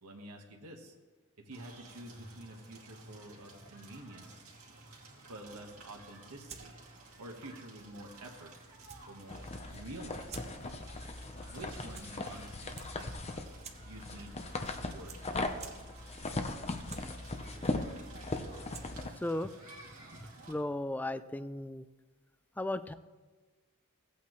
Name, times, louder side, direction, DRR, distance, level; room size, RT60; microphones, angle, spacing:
voice 1, 0.0-0.9 1.4-4.4 5.3-6.8 7.2-8.5 9.0-10.4 11.5-13.1 13.8-14.4 14.7-15.2, right 1 dB, 90° right, 1 dB, 1.3 m, -49 dB
Crackle, 1.5-20.5, right 2 dB, 65° right, 2.4 m, -54 dB
sound 1, 6.1-20.5, right 5 dB, 30° right, 0.8 m, -56 dB
sound 2, 9.3-19.1, left 2 dB, 30° left, 0.7 m, -39 dB
voice 2, 19.2-19.5 20.5-21.9 22.6-22.9, left 1 dB, 5° left, 12 dB, 0.3 m, -35 dB
16.0 x 8.5 x 3.1 m, 1.3 s
head